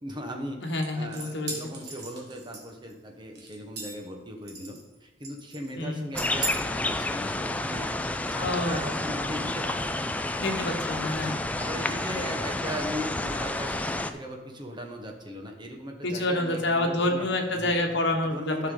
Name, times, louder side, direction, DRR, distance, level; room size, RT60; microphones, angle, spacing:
voice 1, 0.0-7.9 8.3-10.2 11.1-17.8 18.2-18.7, equal, 25° right, 2 dB, 1.2 m, -38 dB
voice 2, 0.6-1.5 5.8-6.0 8.4-8.8 10.4-11.3 16.0-18.7, left 1 dB, 60° left, 3 dB, 1.3 m, -27 dB
sound 1, 0.8-2.9 3.4-4.1 4.5-4.9 5.2-5.7 6.2-6.5, right 3 dB, 60° right, 1.7 m, -37 dB
sound 2, 6.1-14.1, left 2 dB, 10° left, 0.3 m, -30 dB
12.0 x 5.9 x 3.8 m, 1.1 s
head